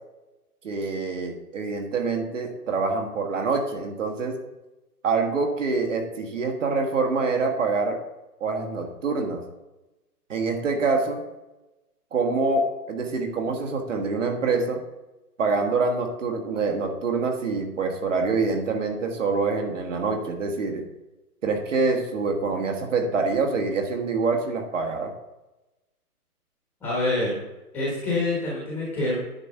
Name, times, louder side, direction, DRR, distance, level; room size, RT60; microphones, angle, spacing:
voice 1, 0.6-4.4 5.0-8.0 8.4-9.4 10.3-11.2 12.1-14.8 15.4-20.8 21.4-25.1, right 4 dB, 50° right, 3 dB, 1.7 m, -25 dB
voice 2, 26.8-27.4 27.7-29.2, left 2 dB, 5° left, -6 dB, 1.1 m, -26 dB
9.8 x 4.9 x 5.5 m, 1.0 s
hypercardioid pair, 160°, 47 cm